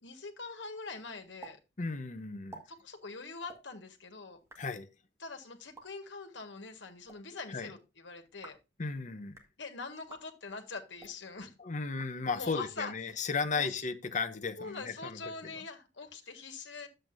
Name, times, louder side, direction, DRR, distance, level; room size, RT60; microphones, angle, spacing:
voice 1, 0.0-1.6 2.7-4.4 5.2-8.6 9.6-11.5 12.3-12.9 13.5-13.7 14.6-16.9, left 4 dB, 75° left, 1.6 m, -43 dB
sound 1, 1.4-1.6 1.8-1.9 2.3-2.6 3.4-3.6 4.3-4.6 5.6-5.9 6.9-7.2 8.2-8.7 9.2-9.5 10.0-10.2 10.9-11.2 11.9-12.6, right 3 dB, 15° right, 1.7 m, -52 dB
voice 2, 1.8-2.6 4.6-4.9 7.5-7.7 8.8-9.4 11.6-15.2, left 4 dB, 45° left, 0.8 m, -35 dB
10.5 x 7.7 x 2.6 m
head